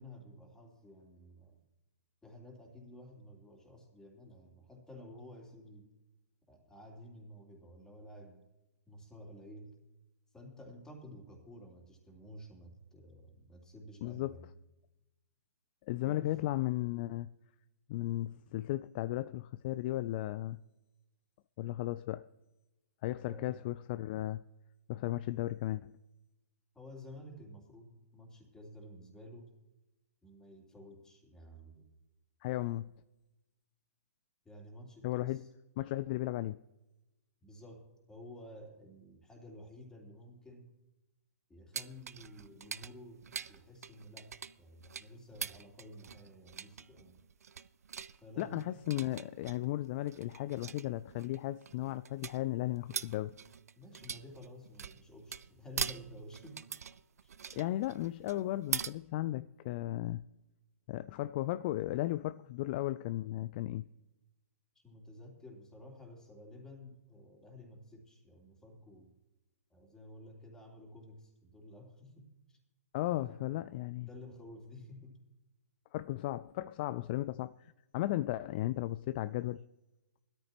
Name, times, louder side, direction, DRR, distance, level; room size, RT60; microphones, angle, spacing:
voice 1, 0.0-1.6 2.2-5.9 6.5-8.4 8.9-9.7 10.3-14.5 16.0-16.4 23.2-23.7 26.7-29.5 30.2-31.9 34.4-35.5 37.4-40.7 41.5-47.2 48.2-48.7 53.7-56.6 57.2-57.3 64.7-69.1 69.7-72.6 73.1-73.4 74.0-75.2, left 1 dB, 5° left, 3.0 m, -52 dB
voice 2, 14.0-14.5 15.9-17.3 17.9-20.6 21.6-22.3 23.0-24.4 24.9-25.9 32.4-32.9 35.0-35.4 35.8-36.6 48.4-53.3 57.5-60.2 60.9-63.9 72.9-74.1 75.9-79.6, left 15 dB, 35° left, 0.3 m, -35 dB
sound 1, 41.7-58.9, right 7 dB, 70° right, 0.6 m, -43 dB
20.5 x 13.5 x 3.0 m
hypercardioid pair, 130°, 9 cm